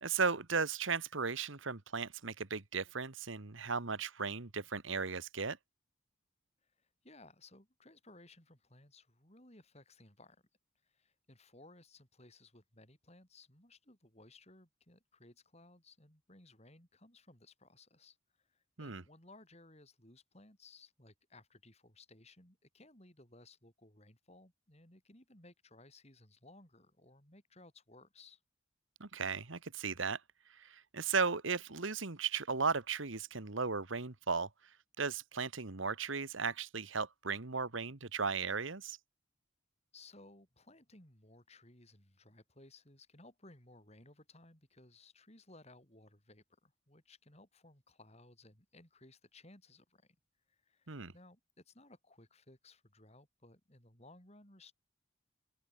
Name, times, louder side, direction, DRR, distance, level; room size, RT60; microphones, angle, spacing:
voice 1, 0.0-5.6 18.8-19.0 29.0-30.2 30.6-34.5 35.0-39.0 50.9-51.1, right 5 dB, 70° right, 1.5 m, -36 dB
voice 2, 6.6-10.4 10.8-28.4 39.9-50.2 50.5-54.7, left 2 dB, 30° left, 6.9 m, -60 dB
open air
head